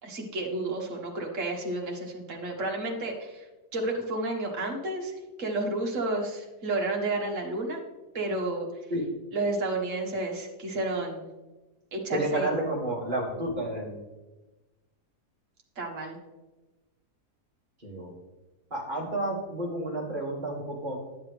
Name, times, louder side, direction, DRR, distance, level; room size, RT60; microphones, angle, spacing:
voice 1, 0.0-3.5 3.7-5.1 5.4-7.8 8.1-8.7 9.3-11.3 11.9-12.5 15.8-16.2, right 2 dB, 50° right, 0 dB, 1.8 m, -31 dB
voice 2, 12.1-14.0 17.8-18.1 18.7-21.0, right 1 dB, 30° right, -3 dB, 2.4 m, -31 dB
11.0 x 7.3 x 3.3 m, 1.1 s
omnidirectional pair, 1.8 m